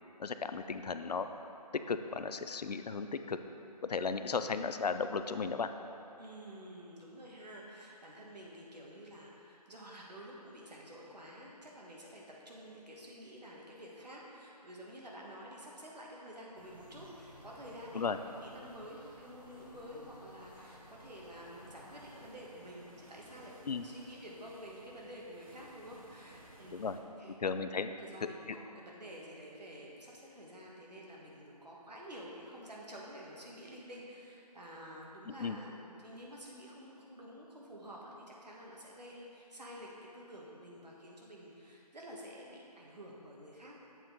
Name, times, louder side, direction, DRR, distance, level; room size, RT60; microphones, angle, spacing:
voice 1, 0.2-1.3 1.7-3.4 3.8-5.7 17.9-18.2 23.7-23.8 26.7-27.0 27.4-27.9 28.5-28.6 35.3-35.6, left 5 dB, 75° left, 9 dB, 0.4 m, -35 dB
voice 2, 6.1-26.9 27.2-27.6 27.8-43.8, equal, 80° right, -3 dB, 1.5 m, -50 dB
sound 1, 16.5-22.4, equal, 30° left, 0.8 m, -56 dB
sound 2, 21.0-27.0, right 1 dB, 55° right, 0.9 m, -58 dB
7.7 x 4.5 x 3.8 m, 2.9 s
figure-of-eight pair, 180°, 21 cm